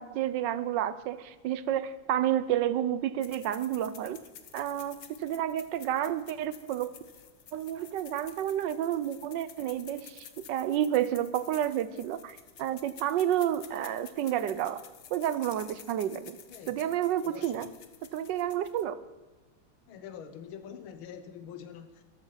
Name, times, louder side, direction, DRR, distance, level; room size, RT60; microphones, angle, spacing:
voice 1, 0.0-4.2 4.5-7.0 7.5-14.8 15.1-16.4 16.7-17.7 18.1-19.0, right 11 dB, 70° right, 15 dB, 1.2 m, -30 dB
sound 1, 3.2-19.0, left 8 dB, 50° left, 1.2 m, -52 dB
voice 2, 16.5-16.8 17.2-17.7 19.9-22.0, left 8 dB, 75° left, 9 dB, 1.7 m, -45 dB
14.0 x 12.5 x 5.7 m, 1.2 s
omnidirectional pair, 2.3 m